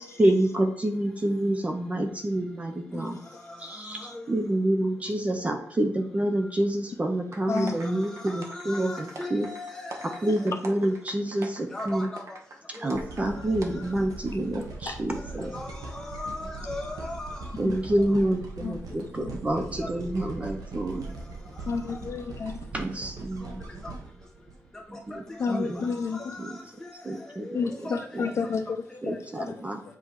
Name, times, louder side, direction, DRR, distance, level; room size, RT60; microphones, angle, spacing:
voice 1, 0.2-3.2 3.6-9.5 10.0-12.1 12.8-15.5 17.6-21.0 22.7-23.6 24.9-25.8 26.4-26.5 27.0-27.5 28.1-28.3 29.0-29.8, right 1 dB, 20° right, 0.6 m, -28 dB
sound 1, 7.3-13.3 13.6-13.7, right 3 dB, 50° right, 0.9 m, -44 dB
voice 2, 7.9-10.3 11.7-12.2 15.4-17.4 19.8-19.9 23.4-23.5 23.8-23.9 25.5-25.6 26.4-26.5 27.4-28.0, left 2 dB, 10° left, 1.2 m, -38 dB
sound 2, 12.9-25.1 25.7-25.8, right 3 dB, 85° right, 1.0 m, -40 dB
voice 3, 18.6-19.4 21.7-22.7 25.4-26.4 27.5-29.7, left 5 dB, 50° left, 0.6 m, -31 dB
7.8 x 2.8 x 4.7 m
wide cardioid pair, 150°, 6 cm